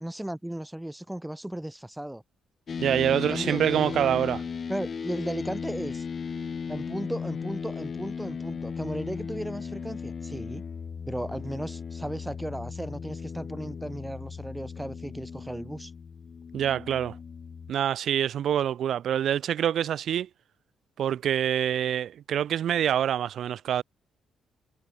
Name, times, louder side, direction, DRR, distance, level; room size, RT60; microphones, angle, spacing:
voice 1, 0.0-2.2 3.1-4.1 4.7-6.0 6.7-10.6 11.1-15.9, right 1 dB, 5° right, 1.3 m, -35 dB
sound 1, 2.7-17.7, left 6 dB, 45° left, 1.4 m, -36 dB
voice 2, 2.8-4.4 16.5-17.2 17.7-20.3 21.0-23.8, right 10 dB, 60° right, 1.1 m, -26 dB
figure-of-eight pair, 40°, 0 cm